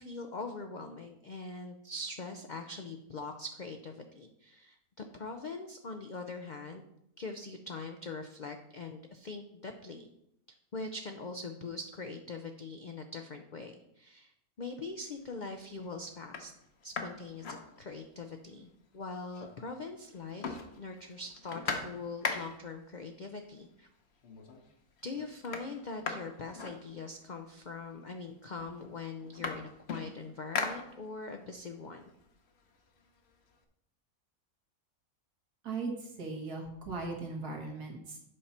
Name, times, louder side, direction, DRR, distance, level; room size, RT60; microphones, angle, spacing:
voice 1, 0.0-6.9 7.2-10.1 10.7-14.3 14.6-16.5 16.8-18.7 18.9-23.9 25.0-32.0, left 3 dB, 75° left, 5 dB, 0.4 m, -42 dB
sound 1, 14.8-15.3 15.8-15.9 16.2-18.3 18.6-18.7 18.9-19.8 20.1-22.8 23.7-23.8 24.2-24.7 25.0-27.4 28.2-28.3 28.6-31.4 31.8-33.5, left 4 dB, 50° left, 1.0 m, -40 dB
voice 2, 35.6-38.2, right 3 dB, 85° right, 1 dB, 2.0 m, -38 dB
8.3 x 5.7 x 4.2 m, 0.79 s
omnidirectional pair, 1.6 m